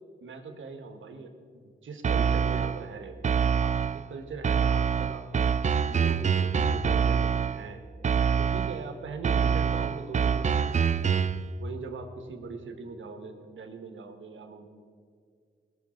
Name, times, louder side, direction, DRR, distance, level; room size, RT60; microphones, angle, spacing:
voice 1, 0.2-3.2 3.6-5.5 5.9-7.8 8.4-11.2 11.6-14.7, right 4 dB, 85° right, 6 dB, 1.3 m, -41 dB
sound 1, 2.0-2.9 3.2-4.1 4.4-7.7 8.0-8.9 9.2-11.5, right 6 dB, 40° right, 0.4 m, -25 dB
18.5 x 6.6 x 4.3 m, 2.1 s
cardioid pair, 55°, 20 cm